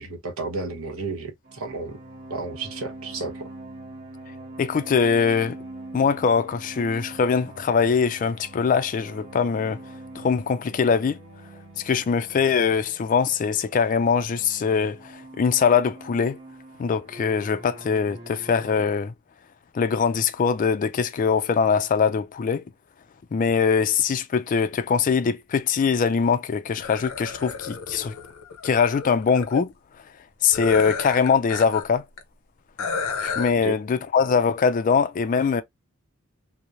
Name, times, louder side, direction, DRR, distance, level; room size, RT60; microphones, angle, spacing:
voice 1, 0.0-2.0 2.3-3.5 33.6-33.8, right 3 dB, 75° right, 0.9 m, -32 dB
sound 1, 1.4-18.9, right 2 dB, 50° right, 1.1 m, -43 dB
voice 2, 4.6-5.6 5.9-9.8 10.2-11.2 11.8-16.4 16.8-19.1 19.7-22.6 23.3-28.1 28.6-29.7 30.4-32.0 33.2-35.6, left 6 dB, 40° left, 0.3 m, -22 dB
sound 2, 26.8-29.6 30.5-31.9 32.2-32.3 32.8-33.5, left 5 dB, 85° left, 0.6 m, -32 dB
2.9 x 2.0 x 2.4 m
head